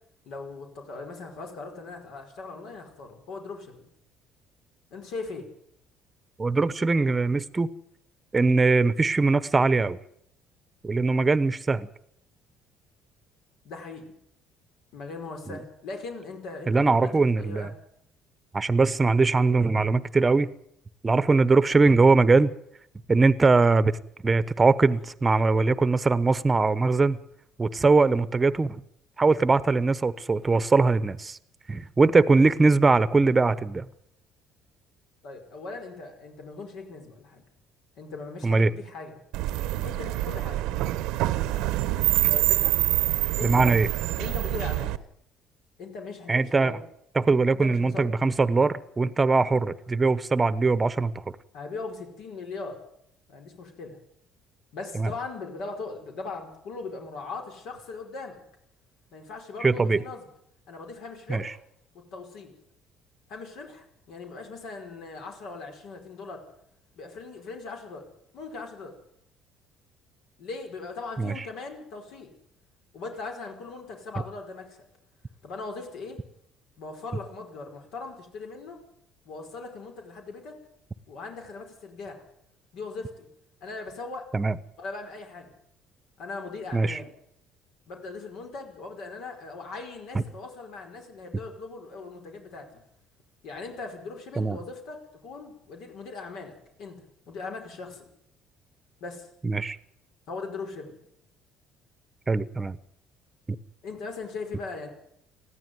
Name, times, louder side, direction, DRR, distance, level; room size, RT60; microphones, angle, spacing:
voice 1, 0.2-3.8 4.9-5.5 13.6-14.1 14.9-17.7 35.2-37.4 38.0-39.2 39.8-40.7 42.3-42.8 43.4-43.8 44.2-44.9 45.8-46.8 47.6-48.1 51.5-52.8 53.3-54.0 54.7-58.4 59.1-60.3 60.7-61.6 61.9-62.5 63.3-66.4 67.0-68.9 70.4-72.3 72.9-74.8 75.4-76.2 76.8-78.8 79.2-80.5 81.1-82.2 82.7-83.3 83.6-84.3 84.8-85.5 86.2-87.1 87.9-92.7 93.4-98.1 99.0-99.3 100.3-101.0 103.8-104.9, left 3 dB, 70° left, 3 dB, 5.0 m, -39 dB
voice 2, 6.4-7.7 8.3-10.0 10.8-11.9 15.5-15.6 16.7-17.7 18.5-20.5 21.0-22.5 23.1-24.0 24.2-27.2 27.6-28.8 29.2-31.4 31.7-33.8 38.4-38.7 43.4-43.9 46.3-46.8 47.1-51.2 54.9-55.1 59.6-60.0 61.3-61.4 71.2-71.4 84.3-84.6 86.7-87.0 90.1-90.2 94.4-94.6 99.4-99.8 102.3-102.8, right 3 dB, 20° right, 15 dB, 1.0 m, -21 dB
sound 1, 39.3-45.0, right 16 dB, 85° right, 1.0 m, -26 dB
20.0 x 15.0 x 9.5 m, 0.72 s
cardioid pair, 125°, 0 cm